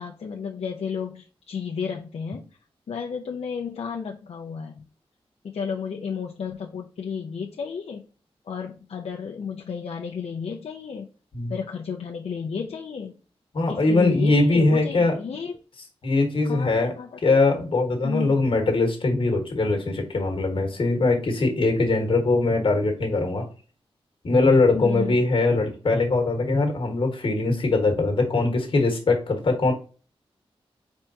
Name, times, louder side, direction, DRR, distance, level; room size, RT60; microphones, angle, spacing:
voice 1, 0.0-2.5 2.9-4.9 5.4-8.1 8.4-11.1 11.5-13.2 13.7-15.6 16.4-17.2 18.0-18.5 24.7-25.2, left 6 dB, 80° left, 1 dB, 0.5 m, -32 dB
voice 2, 13.5-15.1 16.0-16.9 17.2-23.5 24.2-29.7, left 3 dB, 60° left, 3 dB, 1.3 m, -21 dB
4.4 x 3.5 x 2.7 m, 0.37 s
wide cardioid pair, 115°, 10 cm